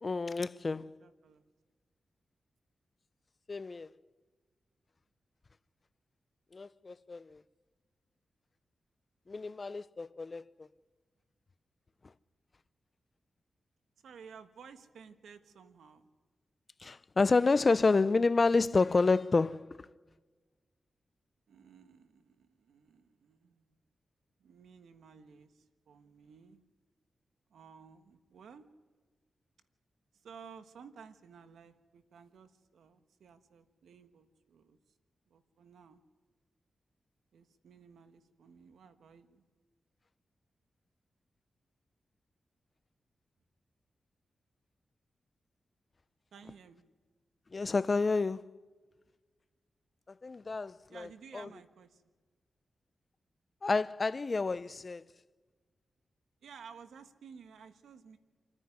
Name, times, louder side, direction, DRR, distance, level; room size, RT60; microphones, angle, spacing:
voice 1, 0.0-1.0 3.5-3.9 6.5-7.4 9.3-10.7 16.8-19.9 47.5-48.5 50.2-51.1 51.3-51.5 53.6-55.1, left 3 dB, 45° left, 0.6 m, -29 dB
voice 2, 0.8-1.5 14.0-16.1 21.5-23.7 24.4-26.6 27.5-28.7 30.1-34.8 35.3-36.0 37.3-39.4 46.3-46.9 50.9-52.0 56.4-58.2, right 6 dB, 90° right, 1.4 m, -55 dB
28.5 x 9.8 x 9.8 m
cardioid pair, 55°, 0 cm